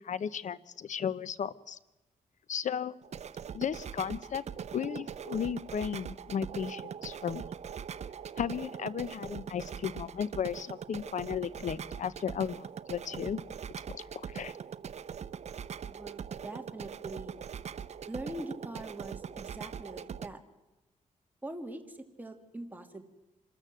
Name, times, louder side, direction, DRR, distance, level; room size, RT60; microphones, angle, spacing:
voice 1, 0.0-1.8 2.5-2.9 3.5-4.4 4.7-7.4 8.4-13.4 13.9-14.5, left 8 dB, 65° left, 18 dB, 0.9 m, -35 dB
sound 1, 3.0-20.3, right 7 dB, 55° right, 0.7 m, -42 dB
voice 2, 15.9-17.3 18.1-20.4 21.4-23.0, right 1 dB, 10° right, 4 dB, 2.7 m, -43 dB
27.0 x 13.5 x 7.7 m, 1.1 s
cardioid pair, 100°, 14 cm